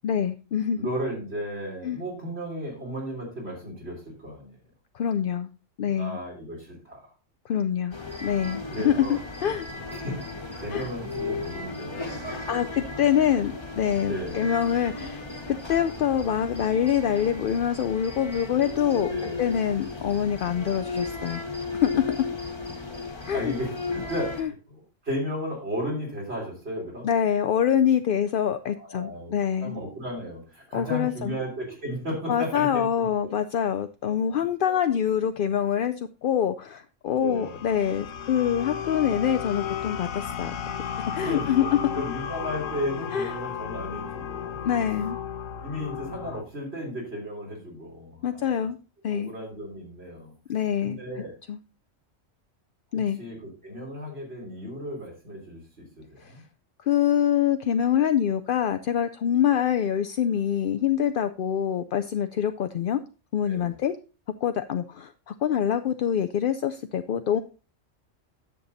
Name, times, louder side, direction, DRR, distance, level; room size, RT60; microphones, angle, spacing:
voice 1, 0.0-0.9 1.8-2.0 4.9-5.5 5.8-6.2 7.5-9.1 9.4-9.7 10.7-10.9 12.5-19.1 19.4-22.2 23.3-23.5 24.4-24.5 27.0-29.8 30.7-31.4 32.3-35.9 36.2-40.5 41.1-41.6 43.1-43.3 44.6-45.2 48.2-48.8 49.0-49.3 50.5-51.0 51.5-51.6 52.9-53.2 56.2-56.3 56.8-63.0 63.3-64.0 64.4-67.4, left 9 dB, 60° left, 9 dB, 0.6 m, -25 dB
voice 2, 0.8-4.6 5.8-7.0 8.7-9.2 9.9-12.3 14.0-14.5 19.1-19.4 23.3-24.8 25.0-27.1 28.8-29.3 29.6-33.1 34.3-34.5 37.2-37.6 41.2-44.6 45.5-48.6 49.1-50.3 50.8-51.3 52.9-53.4 53.6-56.4 63.5-63.8, equal, 50° right, -2 dB, 3.8 m, -34 dB
sound 1, 7.9-24.4, left 3 dB, 20° left, 1.4 m, -35 dB
sound 2, 37.1-46.4, left 8 dB, 80° left, 1.2 m, -34 dB
10.0 x 6.9 x 4.0 m, 0.33 s
omnidirectional pair, 1.3 m